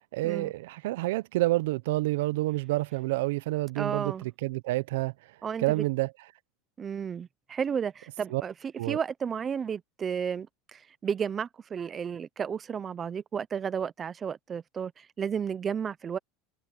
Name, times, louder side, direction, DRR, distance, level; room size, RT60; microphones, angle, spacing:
voice 1, 0.1-5.1 5.6-6.1 8.3-8.4 8.8-9.0, right 19 dB, 80° right, 0.5 m, -28 dB
voice 2, 3.8-4.3 5.4-5.8 6.8-8.5 8.9-16.2, right 7 dB, 20° right, 0.4 m, -33 dB
open air
cardioid pair, 175°, 0 cm